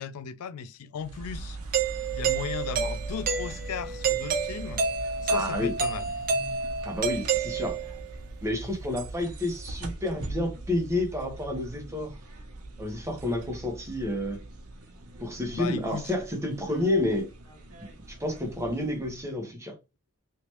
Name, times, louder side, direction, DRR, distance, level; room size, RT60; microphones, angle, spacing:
voice 1, 0.0-1.6 2.1-4.8 5.2-6.1 15.5-16.1, left 7 dB, 80° left, 0.4 m, -36 dB
sound 1, 1.0-19.4, right 2 dB, 80° right, 0.8 m, -41 dB
Doorbell, 1.7-8.1, right 5 dB, 40° right, 0.5 m, -29 dB
voice 2, 5.3-5.7 6.8-7.8 8.4-12.1 12.8-14.4 15.2-17.3 18.1-19.8, left 1 dB, 15° right, 1.1 m, -30 dB
3.2 x 3.0 x 3.0 m
head